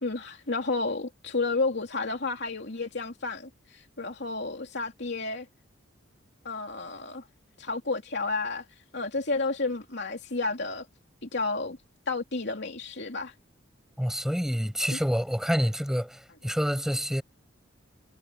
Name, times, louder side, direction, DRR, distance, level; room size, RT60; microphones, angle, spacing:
voice 1, 0.0-5.5 6.4-7.2 7.6-8.6 8.9-10.8 11.2-11.8 12.1-13.3, left 3 dB, 55° left, 3.1 m, -31 dB
voice 2, 14.0-17.2, equal, ahead, 7.5 m, -27 dB
head